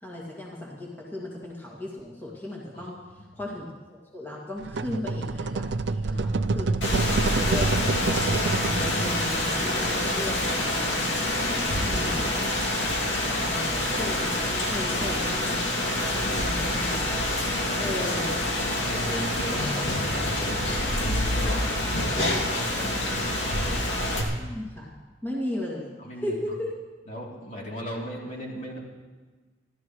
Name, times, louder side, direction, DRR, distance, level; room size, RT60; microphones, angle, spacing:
voice 1, 0.0-6.7 7.3-11.1 11.8-12.8 13.3-14.3 14.6-15.8 16.2-17.2 17.8-18.3 24.4-24.9 25.2-26.7, left 1 dB, 10° left, -4 dB, 2.3 m, -36 dB
sound 1, 4.6-9.5, right 3 dB, 70° right, 0.5 m, -27 dB
voice 2, 6.1-6.6 6.9-7.0 14.8-14.9 16.0-16.4 17.6-18.1 18.6-21.8 22.5-23.7 26.0-26.4 27.1-28.8, equal, 45° left, -3 dB, 3.3 m, -37 dB
Rain, 6.8-24.2, left 1 dB, 75° left, 2.6 m, -26 dB
29.5 x 13.0 x 3.2 m, 1.4 s
head